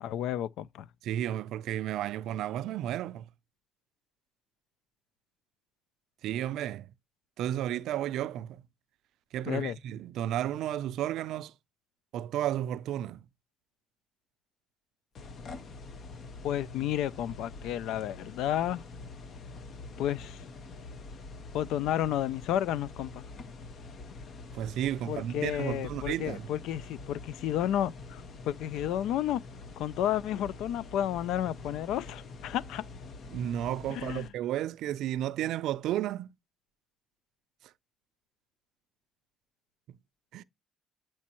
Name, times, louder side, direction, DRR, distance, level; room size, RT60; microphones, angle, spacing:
voice 1, 0.0-0.9 9.5-9.8 16.4-18.8 20.0-20.4 21.5-23.2 25.1-29.4 29.8-32.8 33.9-34.3, left 11 dB, 90° left, 0.3 m, -31 dB
voice 2, 1.0-3.3 6.2-6.9 7.4-8.6 9.3-11.5 12.1-13.2 24.5-26.5 33.3-36.3 40.3-40.4, right 12 dB, 85° right, 0.3 m, -32 dB
sound 1, 15.2-34.3, left 3 dB, 60° left, 1.0 m, -45 dB
8.4 x 4.4 x 2.9 m
cardioid pair, 90°, 0 cm